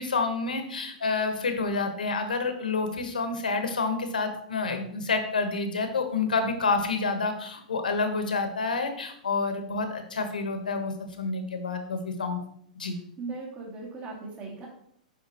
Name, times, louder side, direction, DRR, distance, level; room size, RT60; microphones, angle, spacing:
voice 1, 0.0-12.4 12.8-13.0, left 4 dB, 85° left, 6 dB, 1.3 m, -28 dB
voice 2, 13.2-14.7, right 3 dB, 30° right, -3 dB, 2.5 m, -38 dB
8.5 x 5.5 x 3.0 m, 0.68 s
hypercardioid pair, 110°, 4 cm